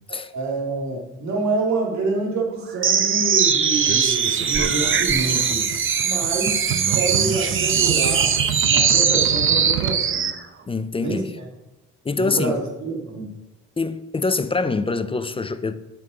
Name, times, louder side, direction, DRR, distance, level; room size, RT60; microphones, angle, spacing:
voice 1, 0.1-5.7 6.0-6.6 6.9-8.4 8.6-10.3 11.0-11.5 12.1-13.4, right 3 dB, 65° right, 2.4 m, -27 dB
sound 1, 2.8-10.4, right 7 dB, 40° right, 0.8 m, -20 dB
sound 2, 4.4-10.0, right 12 dB, 90° right, 0.5 m, -31 dB
voice 2, 10.7-11.3 12.0-12.6 13.8-15.8, left 3 dB, 20° left, 0.5 m, -24 dB
7.7 x 5.3 x 5.7 m
cardioid pair, 90°, 30 cm